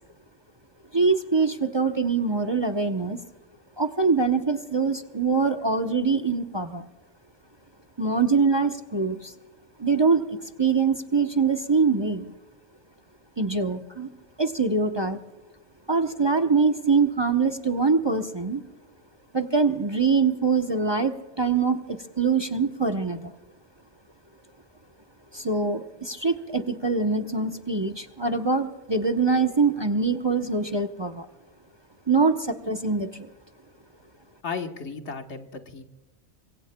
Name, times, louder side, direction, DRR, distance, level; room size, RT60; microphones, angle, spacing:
voice 1, 0.9-3.2 3.8-6.8 8.0-9.3 9.8-12.3 13.4-14.1 14.4-15.2 15.9-18.6 19.3-23.3 25.3-31.3 32.1-33.3, right 4 dB, 25° right, 4 dB, 0.8 m, -24 dB
voice 2, 34.4-35.8, left 5 dB, 75° left, 5 dB, 1.6 m, -34 dB
26.0 x 23.5 x 2.2 m, 1.1 s
omnidirectional pair, 1.2 m